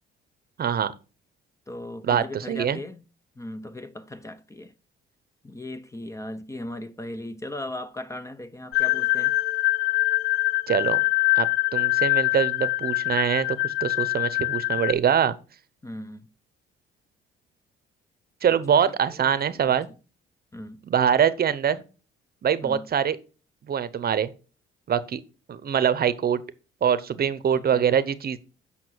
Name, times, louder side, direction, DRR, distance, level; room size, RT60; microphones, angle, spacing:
voice 1, 0.6-0.9 2.0-2.8 10.7-11.0 11.4-11.5 11.7-15.3 18.4-19.9 20.9-21.8 22.4-23.2 23.7-24.3 24.9-25.2 25.5-26.4 26.8-28.4, right 8 dB, 45° right, 0.8 m, -23 dB
voice 2, 1.7-3.0 3.4-4.7 5.4-9.3 15.8-16.3 18.7-19.2 19.5-19.7 20.5-20.8 22.6-22.9 27.5-27.9, left 1 dB, 15° left, 0.7 m, -38 dB
sound 1, 8.7-14.9, left 21 dB, 85° left, 0.6 m, -24 dB
8.2 x 5.6 x 4.5 m
cardioid pair, 90°, 21 cm